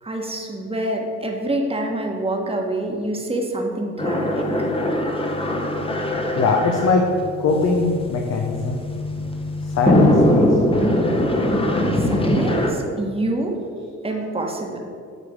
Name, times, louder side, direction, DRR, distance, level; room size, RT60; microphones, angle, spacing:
voice 1, 0.0-4.5 12.0-13.6 14.0-14.8, right 1 dB, 20° right, 1 dB, 1.3 m, -26 dB
sound 1, 4.0-12.7, left 1 dB, 20° left, 1.0 m, -22 dB
voice 2, 6.3-7.0 7.4-8.8 9.6-10.8, left 3 dB, 60° left, 1 dB, 0.9 m, -21 dB
9.2 x 3.3 x 6.5 m, 2.3 s
cardioid pair, 90°, 30 cm